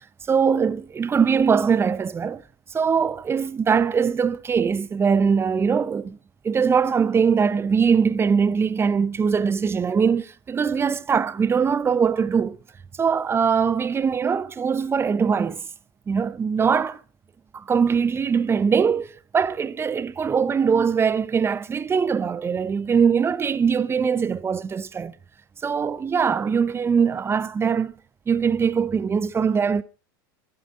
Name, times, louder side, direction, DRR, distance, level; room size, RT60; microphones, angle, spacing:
voice 1, 0.3-2.4 2.7-6.2 6.4-12.6 13.0-15.6 16.1-17.0 17.5-25.1 25.6-27.9 28.3-29.8, right 6 dB, 20° right, 0.8 m, -22 dB
25.5 x 12.0 x 3.9 m
hypercardioid pair, 100°, 12 cm